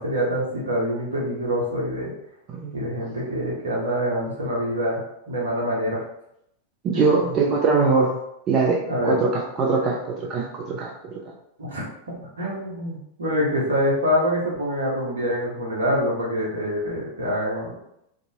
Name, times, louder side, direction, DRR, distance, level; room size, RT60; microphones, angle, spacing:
voice 1, 0.0-2.1 2.7-5.0 5.3-6.0 6.9-7.3 8.8-9.2 11.6-17.7, equal, 70° right, -4 dB, 0.9 m, -25 dB
voice 2, 6.8-8.2 8.5-10.9, right 4 dB, 30° right, -2 dB, 0.4 m, -22 dB
2.7 x 2.3 x 2.7 m, 0.78 s
figure-of-eight pair, 90°, 0 cm